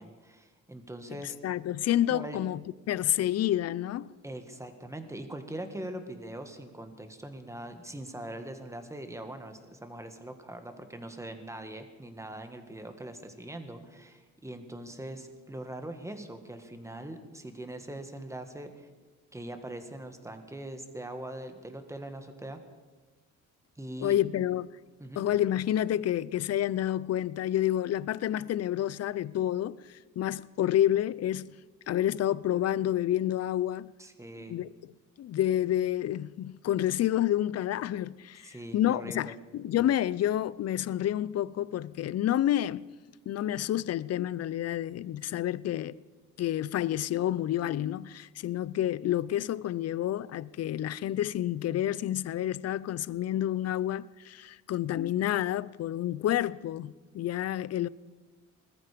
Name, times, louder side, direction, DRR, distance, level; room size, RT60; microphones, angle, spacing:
voice 1, 0.0-1.4 2.1-2.4 4.2-18.9 19.3-22.6 23.8-24.4 25.0-25.2 34.0-34.6 38.4-39.3, right 1 dB, 10° right, 1.9 m, -42 dB
voice 2, 1.4-2.6 2.9-4.1 24.0-24.7 25.2-31.5 31.9-33.9 34.4-34.7 35.2-42.8 43.3-46.0 46.4-57.9, left 12 dB, 55° left, 0.5 m, -29 dB
20.0 x 14.0 x 5.2 m
cardioid pair, 90°, 30 cm